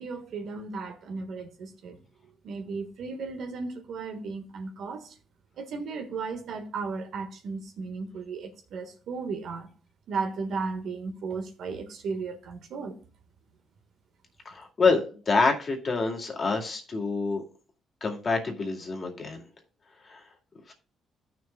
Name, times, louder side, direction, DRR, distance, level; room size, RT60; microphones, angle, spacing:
voice 1, 0.0-2.0 2.4-5.1 5.6-9.7 10.1-13.0, right 4 dB, 70° right, 1.4 m, -35 dB
voice 2, 14.5-17.4 18.0-19.4 20.0-20.2 20.7-20.8, left 4 dB, 40° left, 2.2 m, -27 dB
14.0 x 6.2 x 2.2 m
cardioid pair, 90°, 0 cm